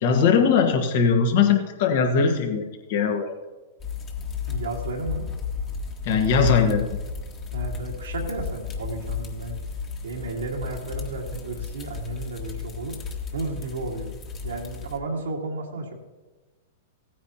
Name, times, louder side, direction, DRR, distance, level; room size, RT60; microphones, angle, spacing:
voice 1, 0.0-3.3 6.0-7.0, left 5 dB, 60° left, 4 dB, 1.5 m, -20 dB
sound 1, 3.8-15.0, left 6 dB, 30° left, 1.5 m, -33 dB
voice 2, 4.4-5.2 7.5-9.6 10.0-13.0 13.3-14.2 14.4-15.9, right 3 dB, 90° right, -2 dB, 1.8 m, -33 dB
16.0 x 9.4 x 2.9 m, 1.2 s
hypercardioid pair, 115°, 0 cm